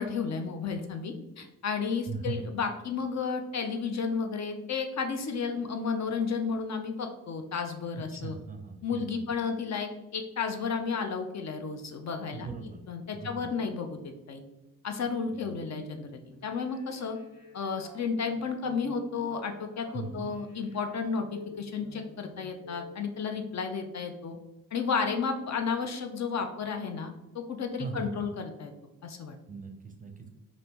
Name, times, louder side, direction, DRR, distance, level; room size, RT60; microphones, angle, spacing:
voice 1, 0.0-8.4 8.8-12.5 12.9-14.4 14.8-17.2 17.5-24.4 24.7-28.7 29.0-29.4, left 5 dB, 50° left, 5 dB, 0.5 m, -32 dB
voice 2, 2.1-2.4 8.1-9.3 12.3-12.8 13.1-13.5 15.3-15.5 19.9-20.3 27.8-28.3 29.5-30.3, right 4 dB, 25° right, 5 dB, 0.5 m, -39 dB
sound 1, 16.3-23.0, left 1 dB, 65° left, 1.2 m, -50 dB
3.3 x 2.5 x 2.8 m, 0.98 s
cardioid pair, 65°, 36 cm